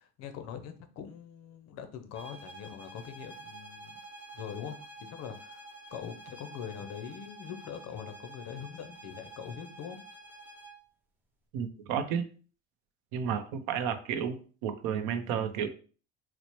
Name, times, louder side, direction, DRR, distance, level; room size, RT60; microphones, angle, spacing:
voice 1, 0.0-4.0 4.3-4.8 5.1-10.0, left 8 dB, 55° left, 8 dB, 0.6 m, -43 dB
sound 1, 2.1-10.8, right 2 dB, 5° right, 0.6 m, -49 dB
voice 2, 11.5-12.3 13.1-15.7, right 8 dB, 85° right, 10 dB, 0.6 m, -32 dB
4.1 x 2.0 x 2.9 m, 0.39 s
cardioid pair, 135°, 31 cm